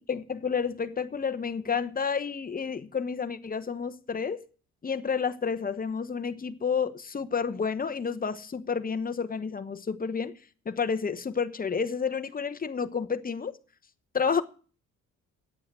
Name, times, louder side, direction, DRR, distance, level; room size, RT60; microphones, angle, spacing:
voice 1, 0.1-4.4 4.8-10.4 10.6-13.5 14.1-14.4, left 6 dB, 30° left, 11 dB, 1.1 m, -30 dB
9.8 x 8.6 x 7.5 m, 0.39 s
cardioid pair, 90°, 30 cm